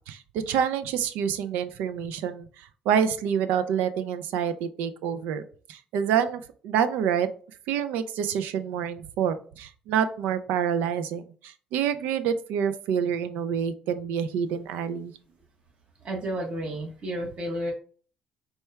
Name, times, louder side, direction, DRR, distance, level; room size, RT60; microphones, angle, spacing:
voice 1, 0.1-5.4 5.7-7.3 7.7-15.1, right 8 dB, 85° right, 11 dB, 0.4 m, -27 dB
voice 2, 16.0-17.7, right 1 dB, 45° right, -1 dB, 1.2 m, -31 dB
4.2 x 2.3 x 3.4 m, 0.42 s
cardioid pair, 85°, 3 cm